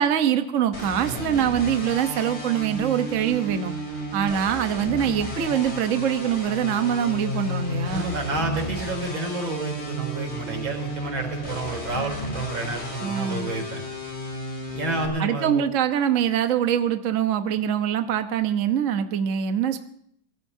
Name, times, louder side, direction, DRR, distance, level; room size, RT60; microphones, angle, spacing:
voice 1, 0.0-3.7 4.1-8.1 13.0-13.5 15.2-19.8, right 9 dB, 50° right, 7 dB, 1.2 m, -24 dB
sound 1, 0.7-15.1, equal, 30° left, 4.0 m, -33 dB
voice 2, 7.9-13.8 14.7-15.6, right 2 dB, 85° right, 3 dB, 4.4 m, -30 dB
24.0 x 17.5 x 2.7 m, 0.70 s
omnidirectional pair, 2.1 m